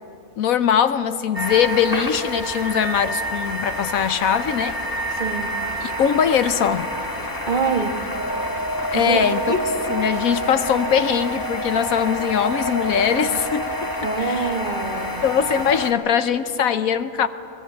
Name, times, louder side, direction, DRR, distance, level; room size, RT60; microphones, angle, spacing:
voice 1, 0.4-4.8 5.8-6.9 8.9-9.4 9.9-13.9 14.2-14.5 15.2-17.3, left 8 dB, 70° left, 12 dB, 1.1 m, -21 dB
sound 1, 1.3-15.9, equal, 15° left, 1.6 m, -28 dB
voice 2, 5.1-5.6 7.5-8.0 8.9-9.6 14.0-15.2 15.5-15.6, right 4 dB, 30° right, 4 dB, 1.6 m, -25 dB
23.0 x 21.5 x 8.8 m, 2.9 s
omnidirectional pair, 1.6 m